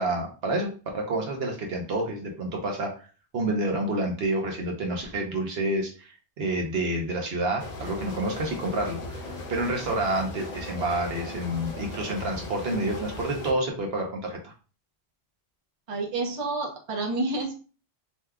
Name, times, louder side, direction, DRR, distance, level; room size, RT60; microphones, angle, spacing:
voice 1, 0.0-3.1 3.3-14.5, right 1 dB, 60° right, 2 dB, 0.9 m, -29 dB
sound 1, 7.6-13.5, left 2 dB, 45° left, 0.7 m, -38 dB
voice 2, 15.9-17.5, right 3 dB, 35° right, 1 dB, 0.6 m, -29 dB
2.8 x 2.3 x 3.3 m, 0.36 s
omnidirectional pair, 1.2 m